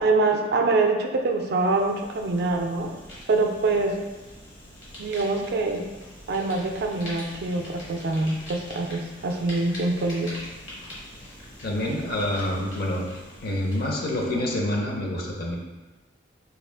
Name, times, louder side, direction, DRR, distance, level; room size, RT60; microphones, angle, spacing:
voice 1, 0.0-2.9 3.3-4.0 5.0-5.8 6.3-10.4, right 3 dB, 55° right, 3 dB, 0.4 m, -24 dB
Fire, 1.4-14.7, equal, 75° left, 1.2 m, -43 dB
voice 2, 11.6-13.0 13.4-15.6, left 1 dB, 55° left, 0 dB, 0.6 m, -27 dB
3.6 x 2.4 x 3.4 m, 1.2 s
head